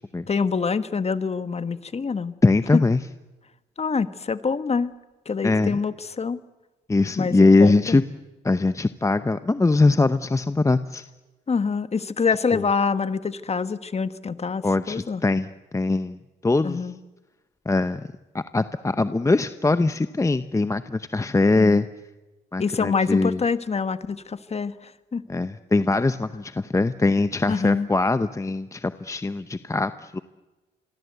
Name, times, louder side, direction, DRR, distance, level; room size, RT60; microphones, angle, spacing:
voice 1, 0.3-2.4 2.7-2.8 3.8-4.9 5.2-6.4 7.1-8.0 11.5-15.2 16.6-17.0 21.6-21.8 22.6-25.2 27.5-27.9, left 5 dB, 30° left, 12 dB, 1.4 m, -26 dB
voice 2, 2.4-3.0 5.4-5.8 6.9-8.0 8.4-11.0 12.5-12.6 14.6-15.5 15.7-16.9 17.7-18.0 18.3-21.9 22.5-23.4 25.3-30.2, left 3 dB, 15° left, 12 dB, 0.8 m, -21 dB
27.0 x 22.5 x 8.1 m, 1.1 s
cardioid pair, 90°, 20 cm